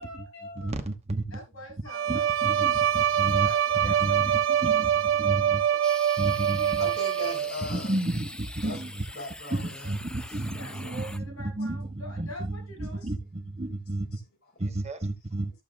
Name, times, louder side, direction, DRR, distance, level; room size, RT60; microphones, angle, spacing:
voice 1, 0.0-0.8 1.3-2.3 3.3-4.4 10.4-13.0, equal, 85° left, 7.5 m, -44 dB
voice 2, 0.6-1.4 2.1-5.6 6.2-6.9 7.7-9.0 9.5-14.1 14.6-15.5, right 2 dB, 30° right, 1.2 m, -32 dB
Bowed string instrument, 1.9-7.7, right 9 dB, 65° right, 0.4 m, -24 dB
sound 1, 5.8-11.2, left 1 dB, 5° left, 0.4 m, -43 dB
voice 3, 6.8-8.0 8.6-8.8 9.1-9.9, left 1 dB, 50° left, 3.8 m, -38 dB
14.5 x 7.2 x 2.4 m
head